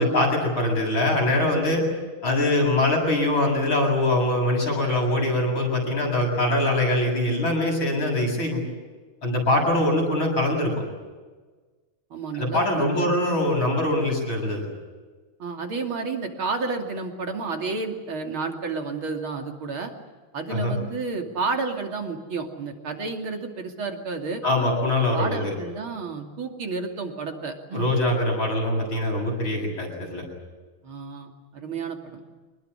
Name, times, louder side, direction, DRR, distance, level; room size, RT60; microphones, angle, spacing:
voice 1, 0.0-1.8 2.2-8.6 9.2-10.7 12.3-14.7 20.5-20.8 24.4-25.5 27.7-30.3, left 1 dB, 85° left, 0 dB, 8.7 m, -23 dB
voice 2, 12.1-13.1 15.4-19.9 20.3-24.4 25.1-27.9 30.8-32.2, right 4 dB, 90° right, 3 dB, 3.6 m, -31 dB
25.5 x 20.0 x 9.9 m, 1.3 s
omnidirectional pair, 2.2 m